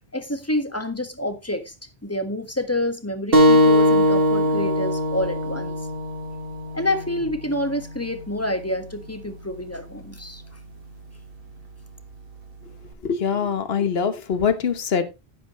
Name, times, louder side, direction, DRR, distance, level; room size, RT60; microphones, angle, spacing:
voice 1, 0.1-1.7 2.0-5.7 6.7-10.4, left 1 dB, 15° left, 1.5 m, -28 dB
sound 1, 3.3-8.5, equal, 60° right, 2.0 m, -21 dB
voice 2, 13.0-15.0, left 6 dB, 65° left, 1.4 m, -23 dB
11.0 x 10.5 x 3.1 m
omnidirectional pair, 1.1 m